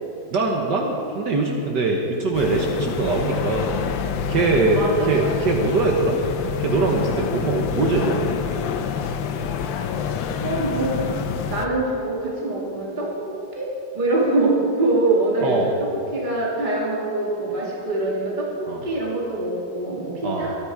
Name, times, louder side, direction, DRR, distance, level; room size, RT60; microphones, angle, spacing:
voice 1, 0.3-3.8 4.3-6.2 6.6-8.3 15.4-15.7 18.7-18.8 20.2-20.5, right 3 dB, 70° right, 1 dB, 1.8 m, -22 dB
sound 1, 2.3-11.7, left 7 dB, 90° left, 1.6 m, -27 dB
voice 2, 4.8-5.1 10.4-11.1 11.5-20.6, right 2 dB, 25° right, -4 dB, 2.4 m, -24 dB
23.5 x 9.3 x 4.8 m, 2.8 s
omnidirectional pair, 2.0 m